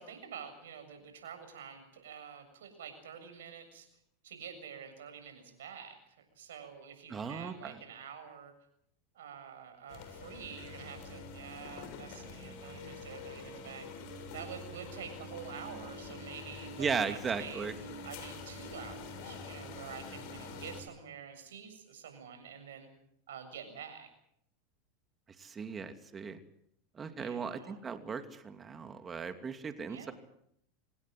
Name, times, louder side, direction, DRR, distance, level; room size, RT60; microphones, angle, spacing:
voice 1, 0.0-3.9 4.2-8.5 9.1-13.9 14.3-22.9 23.3-24.1 27.2-27.8 29.9-30.1, right 7 dB, 80° right, 7 dB, 7.2 m, -48 dB
voice 2, 7.1-7.8 16.8-17.7 25.4-26.4 26.9-30.1, right 5 dB, 25° right, 8 dB, 2.7 m, -37 dB
sound 1, 9.9-20.8, left 3 dB, 60° left, 6.7 m, -46 dB
26.0 x 19.0 x 7.8 m, 0.71 s
hypercardioid pair, 95°, 0 cm